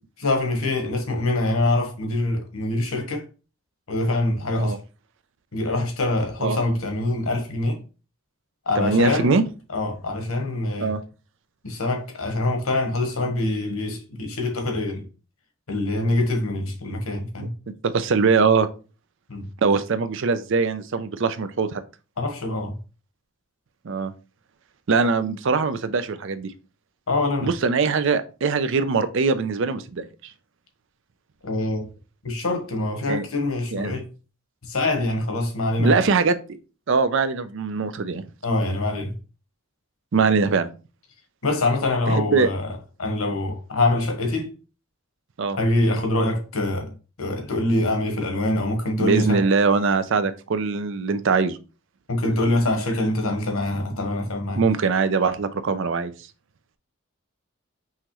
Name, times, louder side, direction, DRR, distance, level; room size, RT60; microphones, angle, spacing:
voice 1, 0.2-3.3 3.9-4.8 5.5-7.8 8.7-9.3 9.7-10.9 11.6-15.1 15.7-17.5 19.3-19.5 22.2-22.8 27.1-27.5 31.4-31.9 32.2-34.1 34.6-36.1 38.4-39.1 41.4-42.7 43.0-44.5 45.6-49.4 52.1-54.6, left 2 dB, 80° left, 1.2 m, -24 dB
voice 2, 8.8-9.4 10.8-11.0 17.8-18.7 19.6-21.8 23.8-24.1 24.9-26.5 27.4-30.0 33.1-33.2 33.7-33.9 35.8-36.4 36.9-38.2 40.1-40.7 42.1-42.5 45.4-45.6 49.0-51.6 54.6-56.1, right 4 dB, 60° right, 0.5 m, -22 dB
5.6 x 3.0 x 3.0 m
head